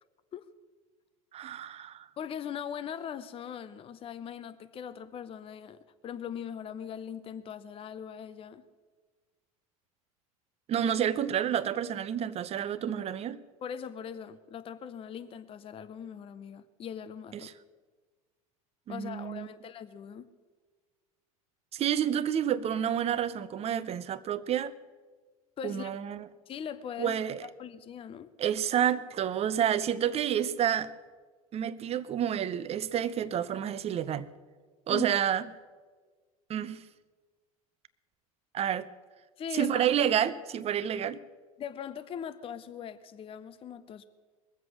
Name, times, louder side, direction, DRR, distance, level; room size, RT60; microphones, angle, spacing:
voice 1, 1.3-2.1 10.7-13.4 17.3-17.5 18.9-19.5 21.7-24.7 25.6-26.3 27.0-27.5 28.4-30.9 31.5-34.3 34.9-35.5 36.5-36.8 38.5-38.9 39.5-41.2, right 9 dB, 35° right, 0.7 m, -29 dB
voice 2, 2.2-8.6 13.6-17.5 18.9-20.3 25.6-26.0 26.5-28.3 34.9-35.1 39.4-40.0 41.6-44.1, left 8 dB, 30° left, 0.7 m, -40 dB
21.5 x 7.8 x 6.3 m
hypercardioid pair, 85°, 18 cm